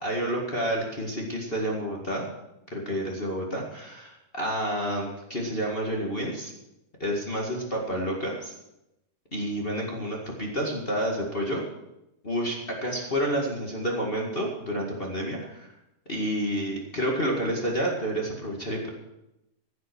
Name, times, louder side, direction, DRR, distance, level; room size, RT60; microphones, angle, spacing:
voice 1, 0.0-2.3 2.7-6.5 7.0-8.5 9.3-11.6 12.2-15.7 16.1-18.9, equal, 25° left, -2 dB, 1.4 m, -29 dB
15.0 x 7.9 x 7.1 m, 0.88 s
omnidirectional pair, 3.9 m